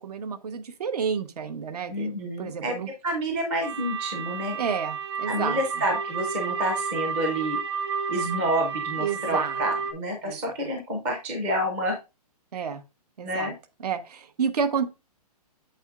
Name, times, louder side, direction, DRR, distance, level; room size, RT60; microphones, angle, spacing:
voice 1, 0.0-2.9 4.5-5.6 9.0-9.6 10.2-10.4 12.5-12.8 13.2-13.5 13.8-14.9, right 6 dB, 75° right, 11 dB, 1.1 m, -30 dB
voice 2, 1.9-2.7 3.0-4.6 5.3-7.6 8.1-12.0 12.5-12.7 13.2-13.5, equal, 5° right, 2 dB, 0.4 m, -29 dB
sound 1, 3.6-9.9, right 6 dB, 40° right, 1.2 m, -31 dB
7.9 x 7.0 x 2.4 m, 0.26 s
hypercardioid pair, 180°, 20 cm